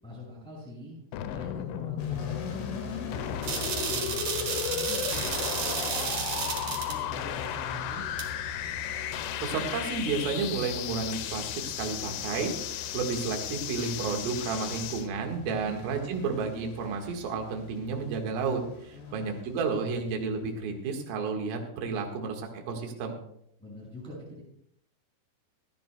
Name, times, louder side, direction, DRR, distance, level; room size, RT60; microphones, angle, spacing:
voice 1, 0.0-1.0 1.3-3.5 3.9-8.0 15.5-15.8 18.9-20.1 23.6-24.4, left 2 dB, ahead, -6 dB, 5.5 m, -44 dB
sound 1, 1.1-15.1, left 11 dB, 80° left, 3.1 m, -35 dB
sound 2, 2.0-20.6, left 4 dB, 65° left, 3.1 m, -43 dB
sound 3, 3.4-7.0 8.2-8.3, right 6 dB, 85° right, 1.5 m, -32 dB
voice 2, 9.4-12.6 12.9-23.2, right 4 dB, 60° right, 2 dB, 2.8 m, -32 dB
26.5 x 10.5 x 2.3 m, 0.73 s
omnidirectional pair, 5.9 m